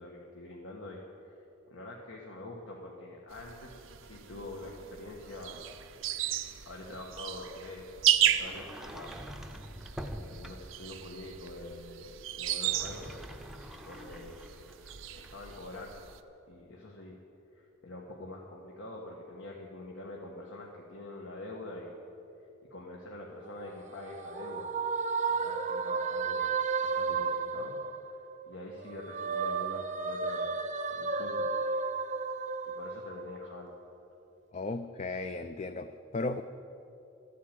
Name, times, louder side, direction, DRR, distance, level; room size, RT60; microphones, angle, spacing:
voice 1, 0.0-1.4 1.7-5.6 6.6-7.9 8.2-9.2 10.1-13.1 13.8-14.8 15.1-16.1 16.5-17.1 17.5-21.9 22.7-24.7 25.3-26.5 26.8-27.8 28.5-31.5 32.6-33.7, left 2 dB, 80° left, -2 dB, 1.5 m, -45 dB
sound 1, 3.3-16.2, right 11 dB, 85° right, 0.6 m, -35 dB
Sliding door, 8.4-10.9 12.5-15.7, equal, ahead, 0.6 m, -45 dB
sound 2, 23.4-28.4 28.8-33.6, right 4 dB, 40° right, 0.7 m, -33 dB
voice 2, 34.5-36.4, left 2 dB, 35° left, 9 dB, 0.4 m, -35 dB
13.0 x 8.5 x 9.0 m, 2.8 s
head